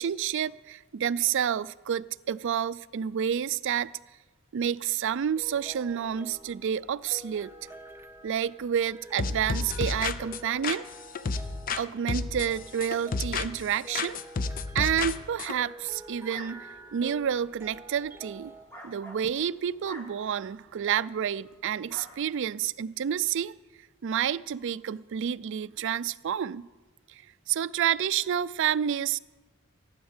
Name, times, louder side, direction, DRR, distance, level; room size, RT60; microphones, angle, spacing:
voice 1, 0.0-3.9 4.5-7.5 8.2-10.9 11.7-14.2 14.7-16.7 16.9-18.5 18.8-23.5 24.0-26.7 27.1-27.2 27.5-29.2, right 9 dB, 60° right, 0.4 m, -29 dB
sound 1, 5.1-18.7, right 1 dB, 10° right, 0.7 m, -48 dB
sound 2, 9.2-11.8 12.1-13.7 13.9-15.6, left 4 dB, 40° left, 0.5 m, -31 dB
sound 3, 15.4-20.9 21.4-21.6 21.9-22.4, right 1 dB, 10° left, 2.1 m, -49 dB
15.0 x 9.5 x 7.2 m
head